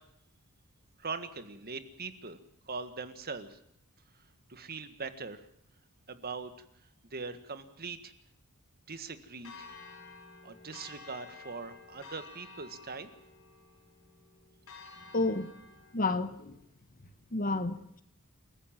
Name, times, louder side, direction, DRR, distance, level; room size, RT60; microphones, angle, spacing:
voice 1, 1.0-2.4 2.7-3.6 4.5-5.4 6.1-6.5 7.1-8.1 8.9-9.5 10.4-13.1, right 4 dB, 45° right, 1.8 m, -41 dB
Church bell, 9.4-15.9, left 4 dB, 65° left, 6.1 m, -51 dB
voice 2, 15.1-15.5 15.9-16.6 17.3-18.0, left 2 dB, 40° left, 1.5 m, -30 dB
28.5 x 14.5 x 7.6 m
head